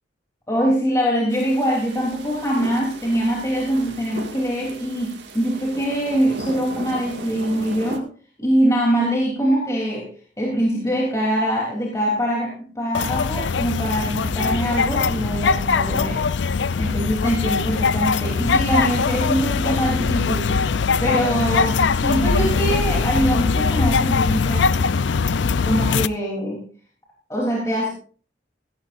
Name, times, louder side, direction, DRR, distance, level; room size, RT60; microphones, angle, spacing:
voice 1, 0.5-8.1 8.4-10.1 10.4-16.3 16.8-20.5 21.0-24.8 25.6-26.6 27.3-27.9, equal, 15° left, -3 dB, 3.3 m, -23 dB
sound 1, 1.3-8.0, right 2 dB, 90° right, 2.1 m, -36 dB
sound 2, 12.9-26.1, left 5 dB, 90° left, 0.5 m, -21 dB
17.0 x 16.5 x 2.6 m, 0.42 s
head